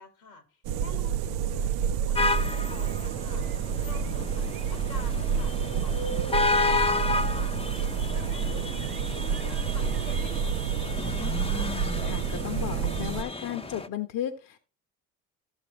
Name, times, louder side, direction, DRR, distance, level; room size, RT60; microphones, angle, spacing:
voice 1, 0.0-3.5 3.8-11.7, left 4 dB, 90° left, 2.0 m, -48 dB
sound 1, 0.7-13.2, right 7 dB, 80° right, 0.6 m, -29 dB
sound 2, 2.2-13.9, left 3 dB, 15° left, 0.7 m, -32 dB
voice 2, 12.0-14.6, left 11 dB, 60° left, 1.1 m, -34 dB
13.5 x 6.9 x 3.1 m
supercardioid pair, 65°, 36 cm